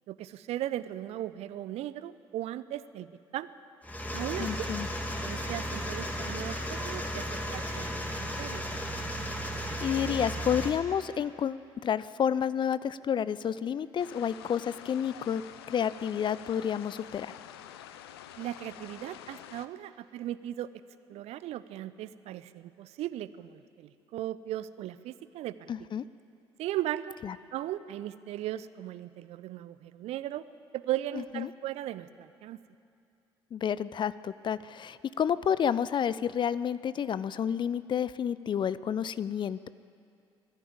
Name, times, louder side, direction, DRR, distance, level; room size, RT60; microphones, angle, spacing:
voice 1, 0.1-3.5 4.1-4.7 5.2-8.6 18.4-20.7 21.1-25.7 26.6-27.2 27.5-30.5 30.7-32.6, right 13 dB, 50° right, 16 dB, 0.6 m, -37 dB
sound 1, 3.8-10.7, equal, 10° left, 2.5 m, -34 dB
voice 2, 4.4-4.9 9.6-15.4 15.7-17.3 25.7-26.0 27.2-27.4 31.3-31.5 33.5-39.7, left 8 dB, 35° left, 17 dB, 0.5 m, -30 dB
sound 2, 14.0-19.7, left 11 dB, 70° left, 0.7 m, -48 dB
21.0 x 14.5 x 8.8 m, 2.6 s
figure-of-eight pair, 50°, 13 cm